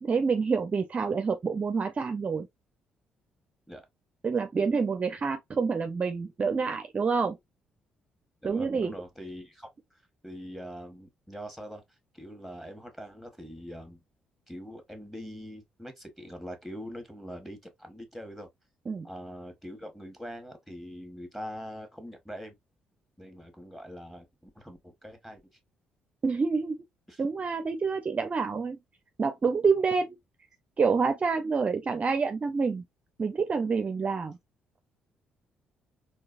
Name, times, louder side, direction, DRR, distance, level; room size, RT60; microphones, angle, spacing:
voice 1, 0.0-2.5 4.2-7.4 8.4-8.9 18.9-19.1 26.2-26.8 27.2-28.8 29.2-30.2 30.8-32.8 33.2-34.4, right 5 dB, 35° right, 0.5 m, -27 dB
voice 2, 8.4-11.8 12.1-14.0 14.5-18.5 19.0-22.5 23.2-25.4 27.1-27.2, equal, 5° left, 1.5 m, -43 dB
3.8 x 2.8 x 2.4 m
hypercardioid pair, 45°, 4 cm